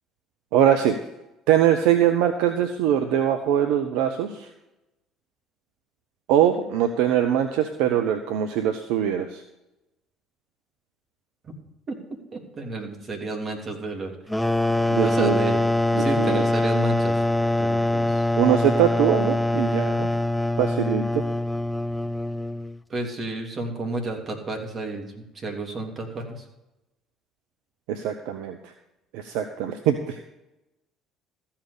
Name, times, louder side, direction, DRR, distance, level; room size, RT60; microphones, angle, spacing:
voice 1, 0.5-1.0 1.5-4.5 6.3-9.4 14.9-15.4 15.9-16.5 18.4-20.1 20.6-21.2 27.9-28.7 29.1-30.2, right 10 dB, 70° right, 7 dB, 0.8 m, -22 dB
voice 2, 12.3-14.1 15.0-15.6 16.0-17.2 17.6-18.3 22.9-26.4, right 3 dB, 40° right, 2 dB, 2.9 m, -31 dB
sound 1, 14.3-22.8, left 1 dB, 5° left, 0.5 m, -23 dB
14.0 x 5.8 x 6.8 m, 0.92 s
hypercardioid pair, 60°, 0 cm